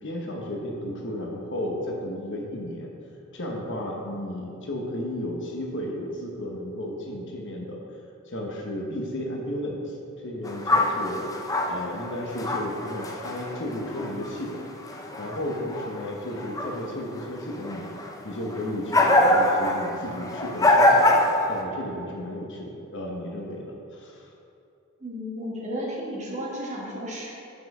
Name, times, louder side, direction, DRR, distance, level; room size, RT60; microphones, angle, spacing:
voice 1, 0.0-2.9 3.3-7.8 8.3-11.3 11.7-14.6 15.2-17.9 18.2-21.1 21.5-24.3, left 1 dB, 55° left, 0 dB, 1.1 m, -33 dB
sound 1, 10.4-14.5 14.8-16.1 16.3-16.8 17.2-17.3 17.6-21.6, left 1 dB, 15° left, 0.5 m, -24 dB
voice 2, 25.0-27.3, equal, 35° right, -4 dB, 1.6 m, -33 dB
5.9 x 5.6 x 6.1 m, 2.7 s
head